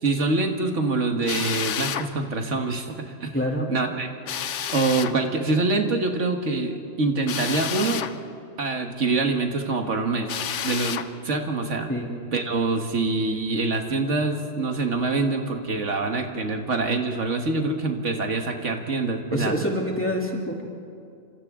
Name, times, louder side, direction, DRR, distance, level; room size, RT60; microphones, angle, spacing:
voice 1, 0.0-3.3 3.7-8.0 8.6-10.3 10.6-11.9 12.3-19.6, right 3 dB, 75° right, 4 dB, 1.8 m, -25 dB
Drill, 1.3-2.1 4.3-5.2 7.3-8.2 10.3-11.1, left 9 dB, 75° left, 1.1 m, -29 dB
voice 2, 3.3-3.7 11.9-12.1 19.3-20.6, equal, 10° left, -2 dB, 2.9 m, -26 dB
29.5 x 26.0 x 3.7 m, 2.4 s
omnidirectional pair, 1.2 m